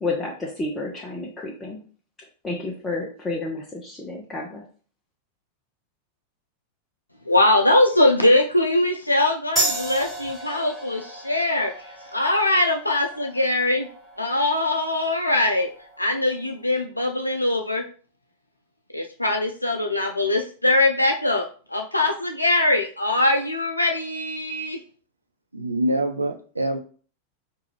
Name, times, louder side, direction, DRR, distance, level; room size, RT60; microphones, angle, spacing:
voice 1, 0.0-1.8 2.4-4.6, left 2 dB, 15° left, -2 dB, 0.7 m, -30 dB
voice 2, 7.3-13.9 14.2-15.7 16.0-17.8 18.9-24.8, left 2 dB, 85° left, 3 dB, 0.3 m, -22 dB
sound 1, 9.6-16.6, right 2 dB, 5° right, 1.7 m, -33 dB
voice 3, 25.5-26.8, right 1 dB, 85° right, 5 dB, 0.5 m, -25 dB
4.4 x 2.5 x 3.3 m, 0.41 s
figure-of-eight pair, 90°, 0 cm